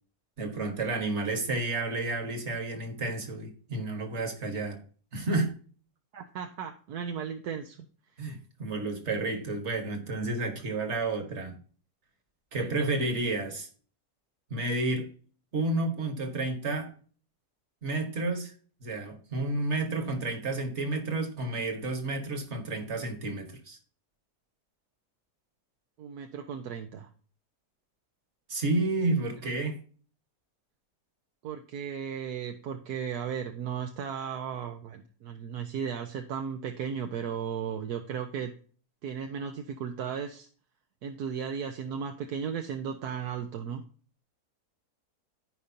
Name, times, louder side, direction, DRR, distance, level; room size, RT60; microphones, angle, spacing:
voice 1, 0.4-4.8 5.1-5.5 8.2-11.6 12.5-13.7 14.5-15.1 15.5-16.9 17.8-18.5 18.8-23.8 28.5-29.8, right 2 dB, 45° right, 1.7 m, -31 dB
voice 2, 6.1-7.9 12.6-12.9 26.0-27.1 29.4-29.5 31.4-38.5 39.0-40.5 41.0-43.8, right 7 dB, 80° right, 1.3 m, -35 dB
14.0 x 5.2 x 2.8 m
omnidirectional pair, 1.7 m